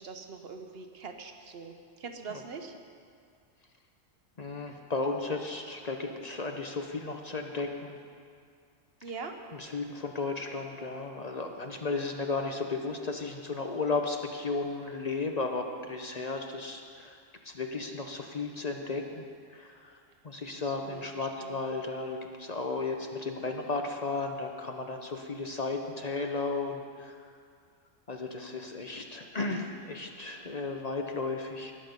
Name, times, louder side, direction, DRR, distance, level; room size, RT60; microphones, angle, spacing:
voice 1, 0.0-2.7 9.0-9.4 20.6-21.6, right 5 dB, 65° right, 5 dB, 1.1 m, -43 dB
voice 2, 4.4-8.0 9.5-17.2 17.4-19.2 19.5-20.0 20.2-27.1 28.1-31.7, left 3 dB, 40° left, 3 dB, 0.8 m, -34 dB
19.0 x 6.5 x 5.2 m, 2.2 s
omnidirectional pair, 1.1 m